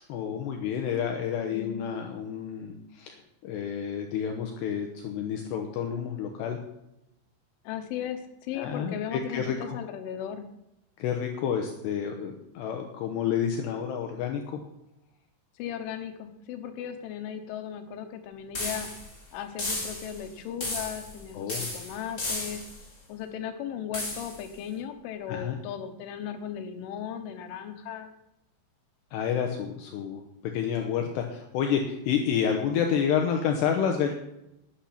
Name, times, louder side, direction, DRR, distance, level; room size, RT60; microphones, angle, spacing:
voice 1, 0.1-6.6 8.5-9.8 11.0-14.6 21.3-21.7 25.3-25.6 29.1-34.1, left 8 dB, 75° left, 3 dB, 2.9 m, -29 dB
voice 2, 7.7-10.5 15.6-18.9 19.3-22.6 23.1-28.1, left 9 dB, 90° left, 7 dB, 3.7 m, -36 dB
sound 1, 18.5-19.1 19.6-20.2 20.6-21.2 21.5-22.8 23.9-24.4, left 2 dB, 20° left, 3.1 m, -34 dB
12.0 x 10.5 x 5.9 m, 0.86 s
omnidirectional pair, 5.4 m